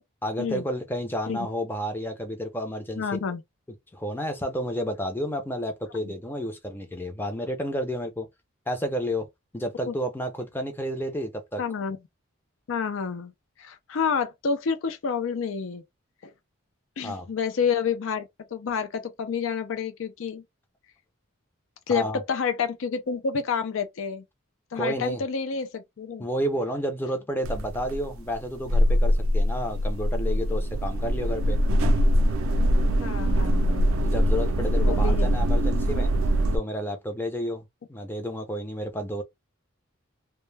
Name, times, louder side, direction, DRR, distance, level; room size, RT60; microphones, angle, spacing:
voice 1, 0.2-3.0 3.9-8.3 8.7-9.3 9.5-11.6 17.0-17.3 21.9-22.2 24.7-25.2 26.2-31.6 34.0-36.1 36.5-39.2, equal, 10° left, 0.5 m, -31 dB
voice 2, 3.0-3.4 6.0-6.1 9.9-10.0 11.6-12.0 12.7-13.3 13.6-15.8 16.2-16.3 17.0-20.4 21.9-24.2 24.7-26.2 33.0-33.9 34.8-35.3, left 6 dB, 65° left, 0.4 m, -29 dB
sound 1, 27.4-36.6, equal, 70° right, 0.4 m, -23 dB
2.1 x 2.1 x 3.2 m
head